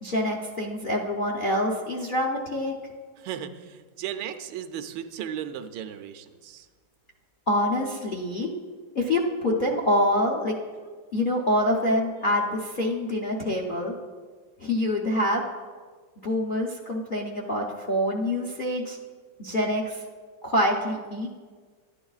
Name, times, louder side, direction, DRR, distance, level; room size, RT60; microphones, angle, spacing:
voice 1, 0.0-2.7 7.5-8.5 8.9-13.9 14.6-15.4 16.2-19.0 19.4-20.0 20.4-21.3, left 1 dB, 50° left, -2 dB, 0.6 m, -26 dB
voice 2, 3.2-6.7, right 9 dB, 80° right, 7 dB, 1.2 m, -36 dB
12.5 x 10.0 x 2.4 m, 1.5 s
omnidirectional pair, 2.0 m